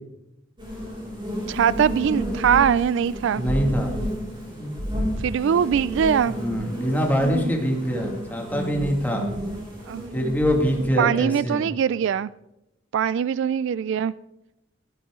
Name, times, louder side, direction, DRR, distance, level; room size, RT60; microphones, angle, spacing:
sound 1, 0.6-10.9, equal, 25° right, 4.7 m, -31 dB
voice 1, 1.5-3.4 5.2-6.3 9.9-10.0 11.0-12.3 12.9-14.1, right 8 dB, 65° right, 0.3 m, -22 dB
voice 2, 3.3-3.9 6.3-9.2 10.1-11.7, equal, 10° left, 2.1 m, -24 dB
13.0 x 12.0 x 3.7 m
head